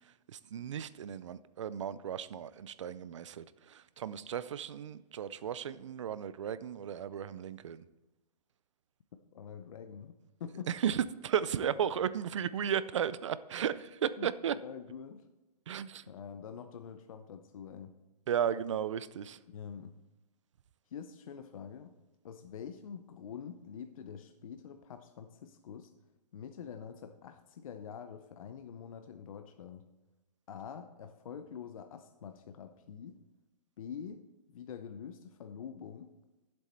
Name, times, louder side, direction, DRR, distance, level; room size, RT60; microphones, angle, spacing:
voice 1, 0.3-7.9 10.7-14.6 15.7-16.0 18.3-19.4, right 9 dB, 50° right, 16 dB, 0.4 m, -35 dB
voice 2, 9.3-10.7 14.2-15.2 16.1-17.9 19.5-19.9 20.9-22.0 22.2-25.9 26.3-29.8 30.5-33.2 33.8-36.1, left 7 dB, 55° left, 8 dB, 0.6 m, -46 dB
10.0 x 7.8 x 4.3 m, 1.1 s
hypercardioid pair, 170°, 21 cm